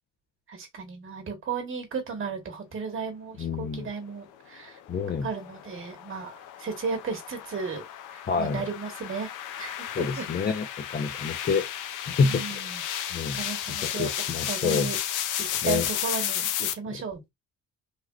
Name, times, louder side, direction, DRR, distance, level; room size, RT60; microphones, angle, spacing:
voice 1, 0.5-4.8 5.2-6.3 6.6-7.8 8.1-9.3 9.6-10.2 12.2-12.8 13.3-14.1 14.5-15.0 15.4-17.3, right 5 dB, 45° right, 1.3 m, -34 dB
voice 2, 3.4-3.9 4.9-5.3 8.3-8.6 10.0-11.6 12.1-12.4 13.1-13.4 14.0-14.9 15.6-15.9, left 5 dB, 35° left, 0.5 m, -27 dB
sound 1, 4.7-16.7, left 10 dB, 85° left, 0.6 m, -33 dB
3.4 x 2.3 x 2.3 m
cardioid pair, 90°, 30 cm